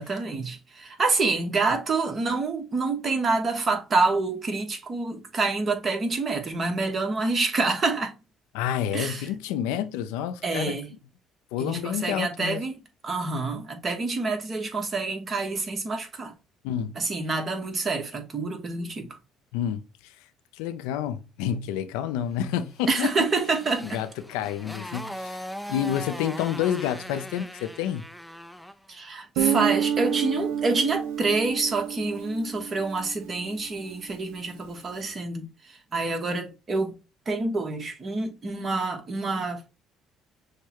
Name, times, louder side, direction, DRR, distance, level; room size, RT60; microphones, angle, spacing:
voice 1, 0.0-8.1 8.9-9.3 10.4-10.9 11.6-16.3 16.9-19.2 22.9-24.0 28.9-37.0 37.3-39.7, right 3 dB, 40° right, 1.2 m, -27 dB
voice 2, 8.5-10.8 11.5-12.6 16.6-17.0 19.5-20.1 20.5-23.1 23.8-25.3 25.7-28.1, left 10 dB, 85° left, 0.4 m, -29 dB
Motorcycle, 22.8-28.9, equal, ahead, 0.4 m, -40 dB
Guitar, 29.4-33.9, right 8 dB, 85° right, 0.6 m, -29 dB
6.3 x 2.2 x 2.9 m
supercardioid pair, 80°, 0 cm